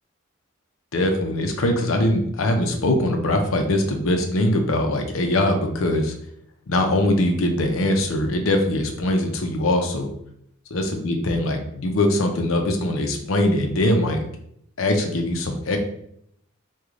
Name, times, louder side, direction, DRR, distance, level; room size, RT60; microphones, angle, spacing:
voice 1, 0.9-6.1 6.7-10.1 10.7-14.2 14.8-15.8, left 1 dB, 75° left, 5 dB, 0.6 m, -22 dB
3.1 x 2.3 x 3.6 m, 0.72 s
head